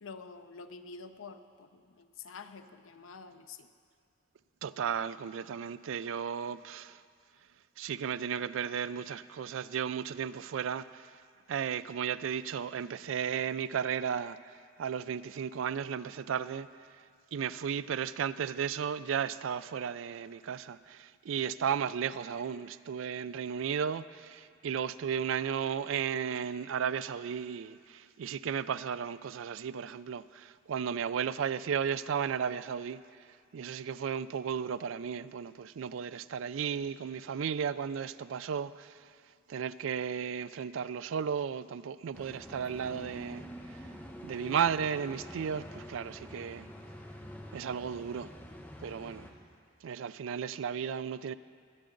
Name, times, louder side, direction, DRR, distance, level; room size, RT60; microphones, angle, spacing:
voice 1, 0.0-3.7, left 4 dB, 85° left, 0.7 m, -48 dB
voice 2, 4.6-7.0 7.8-11.1 11.5-16.7 17.3-33.0 33.5-39.0 39.5-43.4 44.2-46.7 47.5-48.3 48.8-49.3 49.8-51.3, right 7 dB, 75° right, 0.3 m, -34 dB
sound 1, 42.1-49.3, equal, 10° left, 0.9 m, -47 dB
21.5 x 8.6 x 3.9 m
head